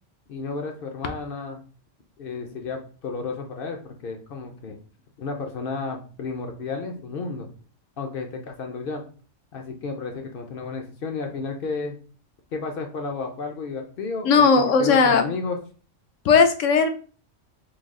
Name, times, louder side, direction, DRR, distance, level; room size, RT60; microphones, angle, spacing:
voice 1, 0.3-1.6 2.2-4.8 5.2-7.5 8.0-9.0 9.5-12.0 12.5-15.6, left 4 dB, 60° left, 4 dB, 0.6 m, -32 dB
voice 2, 14.2-15.3 16.2-16.9, left 5 dB, 75° left, 7 dB, 0.9 m, -17 dB
3.3 x 2.3 x 3.5 m, 0.40 s
omnidirectional pair, 1.3 m